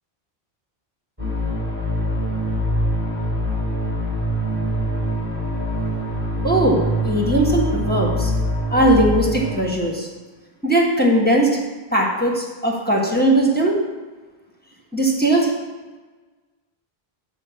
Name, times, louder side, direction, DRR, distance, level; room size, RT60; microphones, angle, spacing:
sound 1, 1.2-9.5, equal, 10° right, 2.8 m, -24 dB
voice 1, 6.4-8.3 8.7-10.1 10.6-11.6 11.9-13.7 14.9-15.5, right 1 dB, 10° left, -2 dB, 1.5 m, -19 dB
9.6 x 4.9 x 7.1 m, 1.3 s
omnidirectional pair, 1.1 m